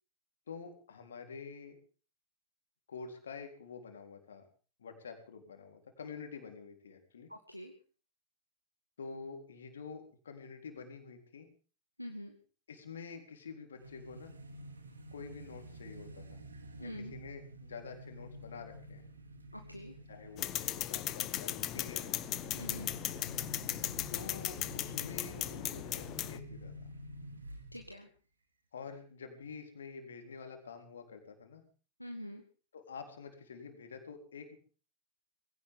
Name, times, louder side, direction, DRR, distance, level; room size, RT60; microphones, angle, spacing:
voice 1, 0.5-1.8 2.9-4.4 4.8-7.3 9.0-11.5 12.7-14.3 15.1-16.4 16.8-19.1 20.1-22.2 24.1-26.7 28.7-31.6 32.7-34.6, left 5 dB, 65° left, 5 dB, 3.9 m, -48 dB
voice 2, 7.3-7.7 12.0-12.3 16.8-17.1 19.5-20.0 22.5-22.9 27.7-28.1 32.0-32.4, equal, 90° left, 4 dB, 1.7 m, -45 dB
sound 1, 13.8-28.0, right 1 dB, 75° right, 2.4 m, -49 dB
sound 2, 20.4-26.4, left 14 dB, 35° left, 1.0 m, -37 dB
20.5 x 16.5 x 3.8 m, 0.38 s
figure-of-eight pair, 90°, 0 cm